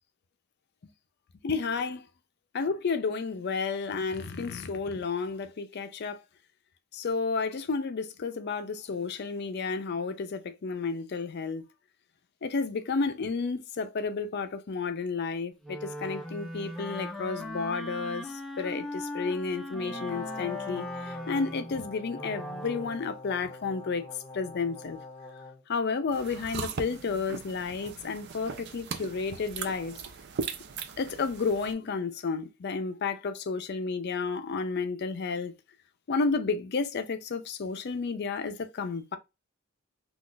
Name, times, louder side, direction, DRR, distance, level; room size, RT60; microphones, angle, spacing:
voice 1, 1.4-2.0 2.5-6.2 6.9-11.6 12.4-18.3 18.6-20.9 21.3-24.1 24.3-25.0 25.7-30.0 31.0-35.5 36.1-39.2, left 4 dB, 50° left, 0.4 m, -31 dB
Wind instrument woodwind instrument, 15.6-23.0, left 1 dB, ahead, 0.5 m, -39 dB
Brass instrument, 19.8-25.6, left 3 dB, 25° left, 1.1 m, -43 dB
sound 1, 26.1-31.7, right 5 dB, 55° right, 0.4 m, -39 dB
2.4 x 2.3 x 3.7 m
head